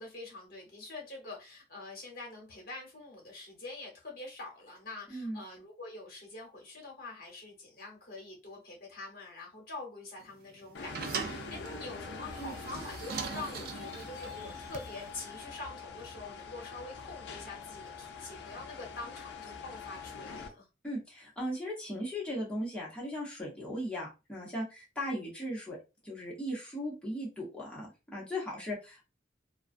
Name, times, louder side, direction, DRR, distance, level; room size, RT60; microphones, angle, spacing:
voice 1, 0.0-20.7, left 2 dB, 55° left, 0 dB, 1.0 m, -45 dB
voice 2, 5.1-5.4 12.4-12.5 20.8-25.8 26.0-29.0, equal, 5° left, -5 dB, 0.9 m, -37 dB
sound 1, 10.2-15.1, right 5 dB, 55° right, 0.3 m, -41 dB
sound 2, 10.7-20.5, left 5 dB, 70° left, 0.4 m, -44 dB
2.4 x 2.2 x 2.5 m, 0.27 s
head